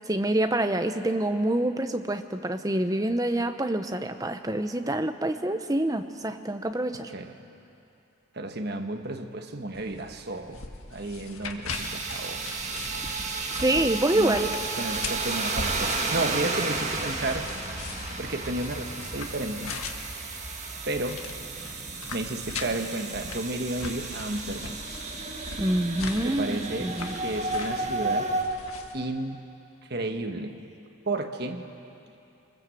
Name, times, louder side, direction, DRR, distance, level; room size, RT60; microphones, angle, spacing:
voice 1, 0.1-7.1 13.5-14.5 25.6-27.2, right 1 dB, 15° right, 8 dB, 0.8 m, -26 dB
voice 2, 8.3-10.6 10.9-12.4 14.1-14.5 14.8-17.5 18.2-19.7 20.9-21.2 22.1-24.8 26.2-28.3 28.9-29.4 29.9-30.6 31.1-31.7, right 2 dB, 50° right, 6 dB, 1.3 m, -32 dB
sound 1, 9.7-29.0, left 4 dB, 85° left, 1.7 m, -41 dB
sound 2, 11.7-28.4, right 3 dB, 35° right, 1.9 m, -33 dB
26.0 x 20.5 x 7.8 m, 2.8 s
head